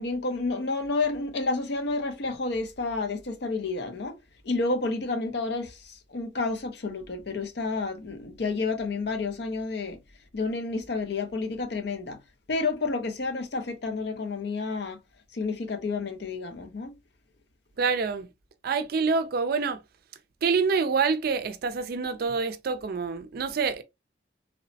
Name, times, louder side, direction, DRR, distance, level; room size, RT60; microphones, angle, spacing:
voice 1, 0.0-4.2 4.4-10.0 10.3-12.2 12.5-15.0 15.3-16.9, left 3 dB, 60° left, 0.6 m, -30 dB
voice 2, 17.8-18.3 18.6-19.8 20.4-23.8, right 5 dB, 55° right, 0.4 m, -26 dB
3.0 x 2.0 x 2.6 m
head